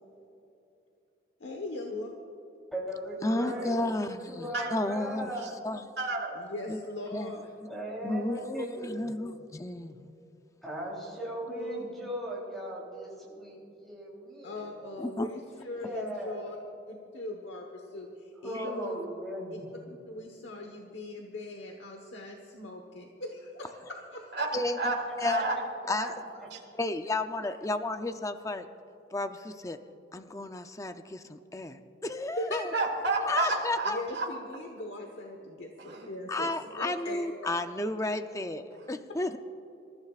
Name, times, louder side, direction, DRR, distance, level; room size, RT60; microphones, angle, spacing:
voice 1, 1.4-2.1 3.2-3.8 6.3-7.5 11.6-11.8 14.4-16.6 16.9-19.0 19.9-24.3 32.4-32.6 33.5-33.6 33.9-36.5 36.8-37.3, left 1 dB, 80° left, 2 dB, 1.2 m, -40 dB
voice 2, 2.7-4.0 4.3-5.6 7.6-9.1 10.6-14.8 15.8-16.5 18.4-19.7 25.0-25.6 26.0-26.1 26.4-26.5, right 1 dB, ahead, -5 dB, 3.2 m, -38 dB
voice 3, 3.2-5.8 6.7-6.8 7.1-7.7 8.0-10.1 15.0-15.3 18.6-18.7 24.5-24.9 25.2-25.4 25.9-26.1 26.8-28.7 29.1-29.8 30.1-32.7 33.3-34.0 36.3-39.4, left 2 dB, 15° left, 8 dB, 0.5 m, -33 dB
voice 4, 6.0-6.4 24.3-24.5 24.8-25.5 25.9-26.1 26.5-26.6 32.7-34.3 35.8-36.1, right 3 dB, 65° right, 0 dB, 2.0 m, -31 dB
26.5 x 14.5 x 2.4 m, 2.9 s
head